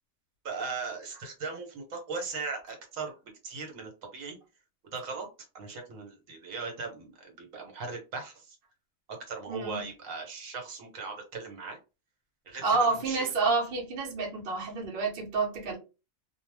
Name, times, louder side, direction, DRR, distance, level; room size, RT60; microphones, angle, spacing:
voice 1, 0.4-3.1 3.4-4.4 4.8-5.3 5.5-8.6 9.3-11.8 12.5-13.3, right 4 dB, 75° right, 1.2 m, -38 dB
voice 2, 9.5-9.9 12.6-15.8, right 4 dB, 45° right, 0.9 m, -29 dB
2.4 x 2.1 x 3.2 m
omnidirectional pair, 1.4 m